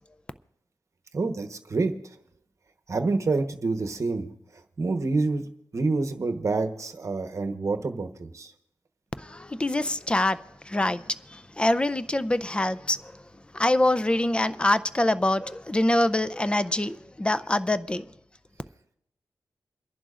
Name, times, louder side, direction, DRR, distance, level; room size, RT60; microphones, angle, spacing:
voice 1, 1.1-1.9 2.9-4.3 4.8-5.4 5.7-8.5, right 3 dB, 50° right, 1.1 m, -27 dB
voice 2, 9.2-13.1 13.5-18.1, left 1 dB, 15° left, 0.5 m, -25 dB
28.5 x 11.0 x 2.5 m
wide cardioid pair, 90°, 7 cm